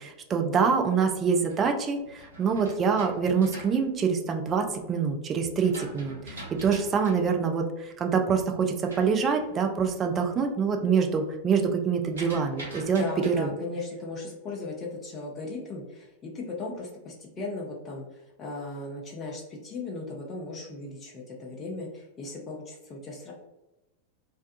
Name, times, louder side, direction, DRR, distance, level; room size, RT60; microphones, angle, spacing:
voice 1, 0.0-13.5, right 6 dB, 25° right, 4 dB, 0.3 m, -25 dB
sound 1, 1.2-4.8 5.3-10.1 10.4-10.9 11.1-13.4, right 1 dB, 70° right, 0.8 m, -45 dB
voice 2, 13.0-23.3, left 3 dB, 25° left, -2 dB, 0.5 m, -37 dB
2.5 x 2.2 x 2.5 m, 0.97 s
figure-of-eight pair, 90°, 0 cm